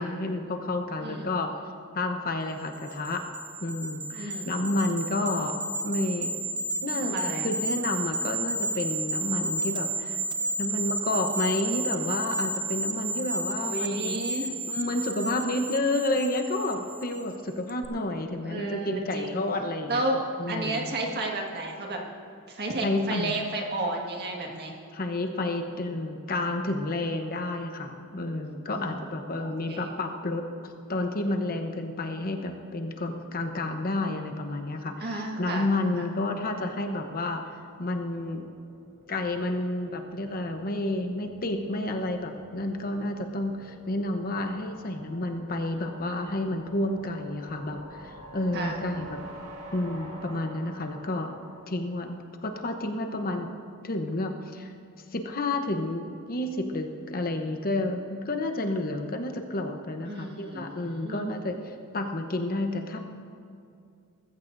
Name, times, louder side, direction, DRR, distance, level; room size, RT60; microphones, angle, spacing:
voice 1, 0.0-1.5 1.9-3.2 3.6-6.4 6.8-7.1 7.4-10.2 10.6-14.2 14.7-20.0 20.4-20.9 22.8-23.3 24.9-37.4 37.8-38.4 39.1-49.2 49.7-51.4 51.7-52.2 52.4-53.5 53.8-54.7 55.1-63.0, left 2 dB, 40° left, 5 dB, 0.9 m, -30 dB
sound 1, 2.7-17.3 17.7-17.8, right 2 dB, 20° right, 0.6 m, -32 dB
voice 2, 4.1-4.5 6.9-7.5 13.6-14.5 18.4-19.4 19.9-22.0 22.5-24.7 28.7-29.9 35.0-35.7 35.9-36.1 48.5-48.8 60.1-61.4, right 2 dB, 45° right, 0 dB, 1.7 m, -32 dB
sound 2, 37.5-52.5, right 1 dB, 80° right, 1.8 m, -48 dB
20.5 x 14.5 x 2.6 m, 2.4 s
head